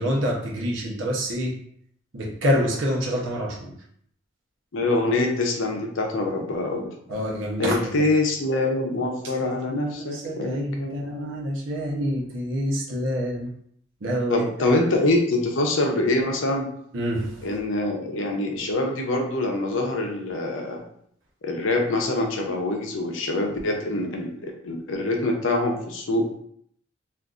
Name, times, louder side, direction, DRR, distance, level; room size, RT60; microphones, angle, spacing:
voice 1, 0.0-1.6 2.1-3.7 7.1-7.9 9.7-13.5 14.0-14.8 16.9-17.4, equal, 80° right, -2 dB, 0.8 m, -27 dB
voice 2, 4.7-6.9 7.6-11.3 14.3-16.7 17.4-20.8 21.4-26.2, left 2 dB, 75° left, 2 dB, 0.6 m, -25 dB
3.8 x 2.5 x 2.4 m, 0.65 s
head